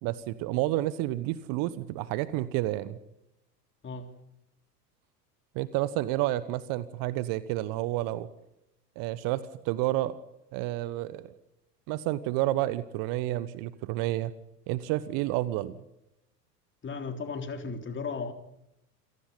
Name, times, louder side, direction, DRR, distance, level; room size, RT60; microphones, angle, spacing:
voice 1, 0.0-3.0 5.5-8.3 9.0-10.2 10.5-11.3 11.9-14.3 14.7-15.7, right 16 dB, 40° right, 1.1 m, -30 dB
voice 2, 16.8-18.3, left 4 dB, 25° left, 3.5 m, -35 dB
27.5 x 17.5 x 5.5 m
figure-of-eight pair, 80°, 50 cm